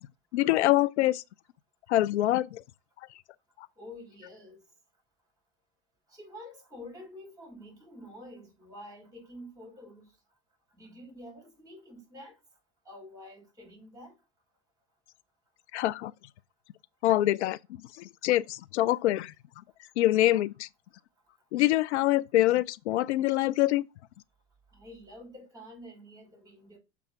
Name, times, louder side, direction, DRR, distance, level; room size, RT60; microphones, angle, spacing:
voice 1, 0.3-1.2 1.9-2.6 15.7-16.1 17.0-17.6 18.2-19.3 20.0-20.7 21.5-23.8, left 15 dB, 85° left, 0.5 m, -25 dB
voice 2, 3.8-4.6 6.1-10.1 10.7-12.4 12.9-14.2 24.7-26.8, left 1 dB, 10° right, 5.2 m, -48 dB
6.8 x 3.6 x 5.5 m
hypercardioid pair, 100°, 33 cm